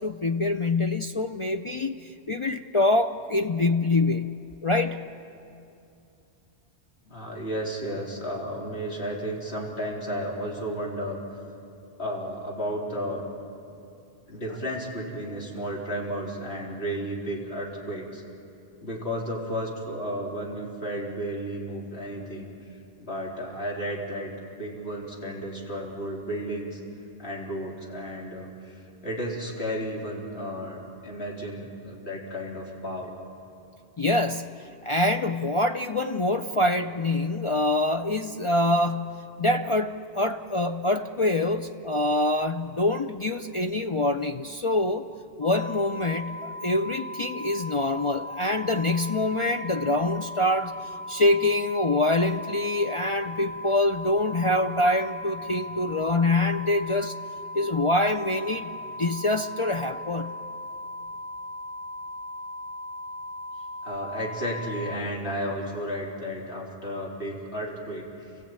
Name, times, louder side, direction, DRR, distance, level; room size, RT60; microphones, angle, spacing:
voice 1, 0.0-5.0 34.0-45.1 45.4-50.7 51.1-57.1 57.5-58.7 59.0-60.4, left 2 dB, 35° left, 6 dB, 0.6 m, -25 dB
voice 2, 7.1-11.2 12.0-13.3 14.3-18.2 18.8-22.8 23.1-24.3 24.6-26.8 27.2-33.2 63.8-68.3, equal, 70° left, -3 dB, 4.0 m, -33 dB
sound 1, 45.4-65.0, left 1 dB, 40° right, 0.9 m, -38 dB
29.5 x 15.5 x 8.9 m, 2.6 s
omnidirectional pair, 1.1 m